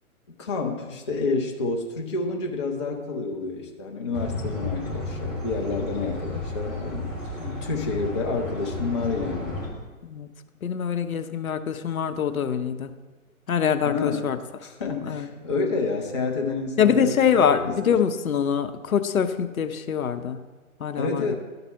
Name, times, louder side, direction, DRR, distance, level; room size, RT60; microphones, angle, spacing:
voice 1, 0.4-7.1 7.6-9.5 13.8-14.3 14.6-17.4 17.6-17.9 21.0-21.3, left 3 dB, 20° left, 1 dB, 0.4 m, -29 dB
sound 1, 4.1-9.7, left 2 dB, ahead, 1.8 m, -33 dB
voice 2, 10.6-12.9 13.5-14.4 14.9-15.3 16.8-20.4 20.8-21.4, left 7 dB, 75° left, 9 dB, 0.7 m, -24 dB
11.5 x 4.1 x 5.5 m, 1.3 s
figure-of-eight pair, 135°, 43 cm